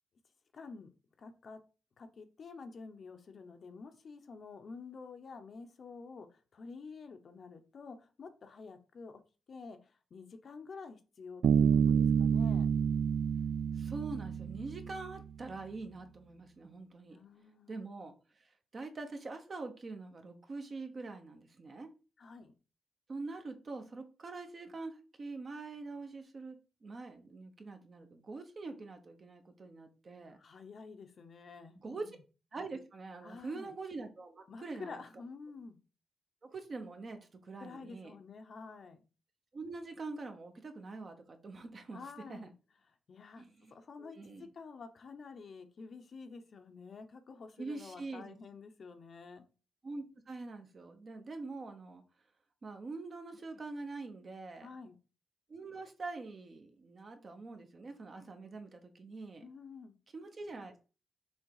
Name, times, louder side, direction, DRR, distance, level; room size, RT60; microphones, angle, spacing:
voice 1, 0.5-0.9 1.2-1.6 2.0-9.2 9.5-12.7 17.1-17.9 22.2-22.5 30.4-32.2 33.2-33.7 34.5-35.8 37.6-39.0 41.9-42.5 43.1-43.5 43.7-49.4 54.6-55.0 59.4-60.0, left 4 dB, 45° left, 7 dB, 0.8 m, -49 dB
Bass guitar, 11.4-15.1, right 7 dB, 60° right, 0.3 m, -28 dB
voice 2, 13.7-17.2 17.7-21.9 23.1-30.4 31.7-32.1 32.5-35.0 36.4-38.1 39.5-42.0 42.3-42.5 43.4-43.7 44.0-44.5 47.6-48.4 49.8-52.0 52.6-54.7 55.5-59.5 60.1-60.8, right 3 dB, 35° right, 6 dB, 1.0 m, -44 dB
6.3 x 3.4 x 4.8 m, 0.34 s
wide cardioid pair, 160°, 0 cm